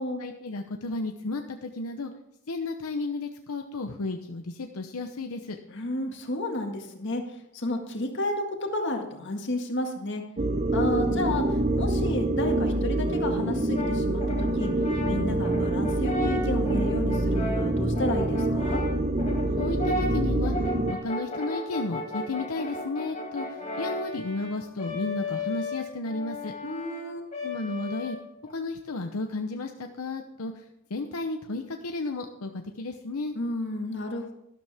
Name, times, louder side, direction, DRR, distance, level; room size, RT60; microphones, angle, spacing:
voice 1, 0.2-2.1 2.5-5.6 19.6-20.5 21.0-26.5 27.4-28.2 28.5-30.6 30.9-33.4, left 3 dB, 85° left, 4 dB, 0.8 m, -33 dB
voice 2, 5.7-7.2 7.5-10.2 10.7-14.7 15.1-18.8 26.6-27.2 33.3-34.3, left 1 dB, 55° left, 3 dB, 1.8 m, -31 dB
sound 1, 10.4-20.9, right 2 dB, 35° right, 0.7 m, -26 dB
Brass instrument, 13.7-28.5, left 2 dB, 30° left, 2.2 m, -35 dB
12.5 x 12.0 x 3.5 m, 0.80 s
head